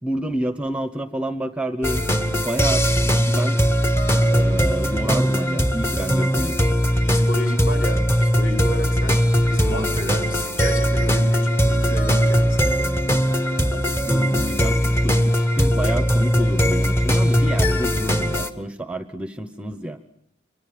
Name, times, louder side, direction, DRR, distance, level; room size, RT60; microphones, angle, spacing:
voice 1, 0.0-2.0 2.3-3.6 4.1-6.7 13.7-20.1, right 1 dB, 5° right, 9 dB, 1.0 m, -29 dB
sound 1, 1.8-18.5, equal, 15° left, 1.3 m, -20 dB
voice 2, 6.0-6.3 7.0-13.0, equal, 45° left, 5 dB, 5.8 m, -32 dB
26.5 x 24.0 x 7.6 m, 0.72 s
head